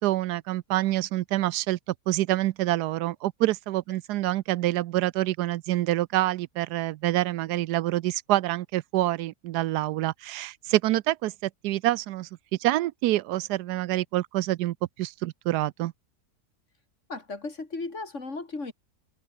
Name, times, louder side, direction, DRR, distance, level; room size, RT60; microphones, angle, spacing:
voice 1, 0.0-1.8 2.1-12.3 12.6-15.9, right 15 dB, 90° right, 1.2 m, -26 dB
voice 2, 17.1-18.7, left 3 dB, 50° left, 3.5 m, -35 dB
omnidirectional pair, 1.7 m